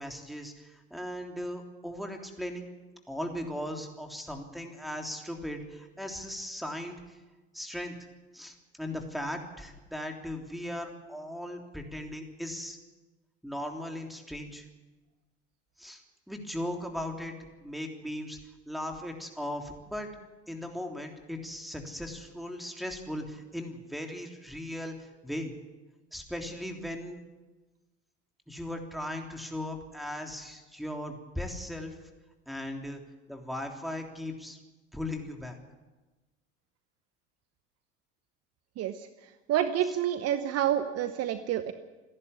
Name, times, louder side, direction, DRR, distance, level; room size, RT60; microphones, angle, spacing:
voice 1, 0.0-2.7 3.1-7.2 7.5-7.9 8.3-12.8 13.4-14.6 15.8-16.0 16.3-17.3 17.6-18.4 18.7-20.1 20.5-25.5 26.1-27.2 28.5-32.0 32.5-33.0 33.3-34.6 34.9-35.6, left 1 dB, ahead, 3 dB, 3.4 m, -38 dB
voice 2, 38.8-41.7, right 11 dB, 40° right, 11 dB, 1.1 m, -29 dB
28.5 x 11.0 x 8.4 m, 1.2 s
figure-of-eight pair, 70°, 36 cm